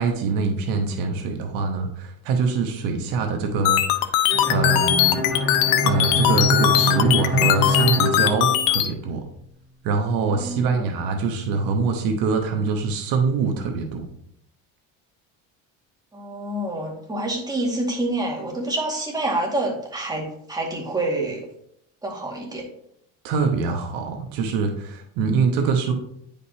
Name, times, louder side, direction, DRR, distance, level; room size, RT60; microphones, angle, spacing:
voice 1, 0.0-5.2 5.8-9.2 9.8-14.0 23.2-25.9, right 4 dB, 75° right, 4 dB, 1.2 m, -24 dB
sound 1, 3.7-8.9, left 12 dB, 85° left, 0.7 m, -20 dB
Bowed string instrument, 4.3-9.1, left 1 dB, 45° left, 2.5 m, -25 dB
voice 2, 10.2-10.9 16.1-21.4 22.0-22.6, right 2 dB, 10° right, -2 dB, 2.0 m, -27 dB
9.6 x 5.2 x 2.8 m, 0.72 s
cardioid pair, 110°, 34 cm